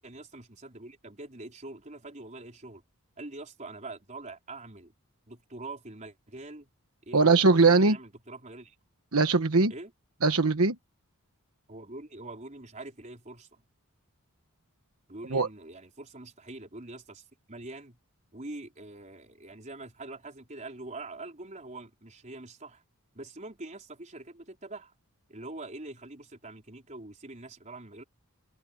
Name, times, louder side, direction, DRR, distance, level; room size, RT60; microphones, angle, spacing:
voice 1, 0.0-2.8 3.2-4.9 5.3-6.7 7.1-8.8 9.7-9.9 11.7-13.6 15.1-18.0 18.3-22.8 23.1-24.9 25.3-28.0, right 2 dB, 35° right, 4.6 m, -44 dB
voice 2, 7.1-8.0 9.1-9.7 10.2-10.8 15.3-15.5, right 3 dB, 75° right, 1.2 m, -21 dB
head